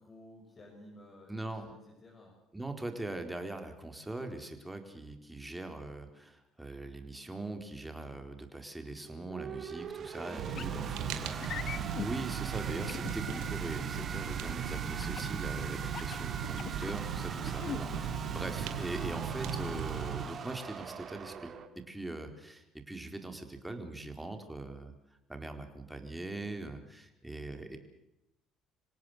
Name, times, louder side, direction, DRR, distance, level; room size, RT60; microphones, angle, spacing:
voice 1, 0.0-2.4 10.2-11.6 17.7-18.0, left 1 dB, 40° left, -1 dB, 7.2 m, -53 dB
voice 2, 1.3-1.7 2.5-24.9 25.3-27.8, right 2 dB, 10° right, 6 dB, 4.2 m, -41 dB
sound 1, 9.0-21.7, right 7 dB, 50° right, 2.6 m, -42 dB
Fire, 10.4-20.2, right 8 dB, 75° right, 2.7 m, -37 dB
sound 2, 10.5-10.7 11.4-12.1 12.9-13.5 15.0-15.3 15.8-16.9 17.4-17.8, left 8 dB, 55° left, 1.2 m, -40 dB
26.5 x 17.5 x 8.0 m, 0.86 s
hypercardioid pair, 65°, 0 cm